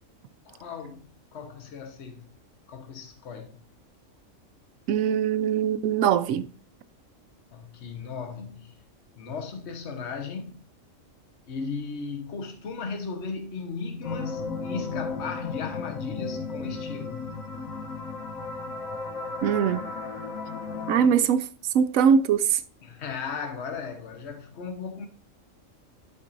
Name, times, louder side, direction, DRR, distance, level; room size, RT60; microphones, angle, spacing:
voice 1, 0.4-2.4 2.7-3.7 7.5-8.8 9.2-10.6 11.5-17.3 22.8-25.1, left 5 dB, 55° left, 1.3 m, -36 dB
voice 2, 4.9-6.5 19.4-19.8 20.9-22.6, right 7 dB, 80° right, 1.0 m, -22 dB
sound 1, 14.0-21.1, left 4 dB, 80° left, 1.4 m, -34 dB
11.0 x 5.3 x 2.6 m
omnidirectional pair, 1.4 m